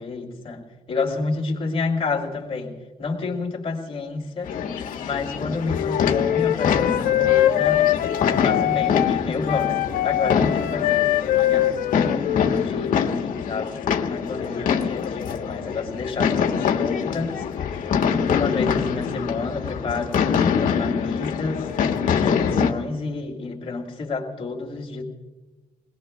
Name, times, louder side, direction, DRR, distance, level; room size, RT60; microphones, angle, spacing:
voice 1, 0.0-4.6 5.0-7.9 8.2-11.7 12.0-17.9 18.2-21.7 22.0-25.0, left 4 dB, 40° left, 0 dB, 3.1 m, -30 dB
sound 1, 4.4-22.7, left 7 dB, 65° left, 1.4 m, -25 dB
Wind instrument woodwind instrument, 5.6-13.1, left 13 dB, 85° left, 0.7 m, -23 dB
30.0 x 20.5 x 2.3 m, 1.2 s
cardioid pair, 130°, 15 cm